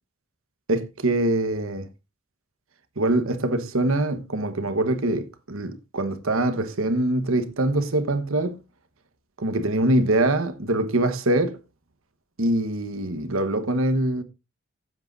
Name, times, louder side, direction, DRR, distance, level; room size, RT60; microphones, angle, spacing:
voice 1, 0.7-1.9 3.0-8.6 9.4-11.6 12.4-14.2, right 1 dB, 70° right, 1.3 m, -24 dB
15.5 x 7.9 x 2.6 m
head